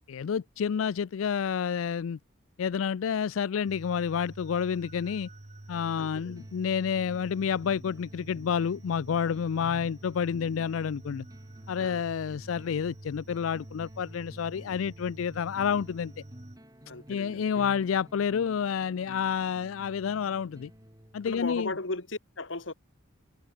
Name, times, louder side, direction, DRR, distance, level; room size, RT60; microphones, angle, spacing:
voice 1, 0.1-2.2 2.6-5.3 5.7-11.2 11.7-16.1 17.1-20.7 21.1-21.7, left 7 dB, 90° left, 0.4 m, -29 dB
sound 1, 3.7-16.6, right 1 dB, 35° right, 1.3 m, -48 dB
sound 2, 5.7-21.7, equal, 20° right, 6.7 m, -52 dB
voice 2, 6.0-6.4 11.8-12.0 16.8-17.7 21.2-22.7, left 2 dB, 70° left, 2.3 m, -37 dB
head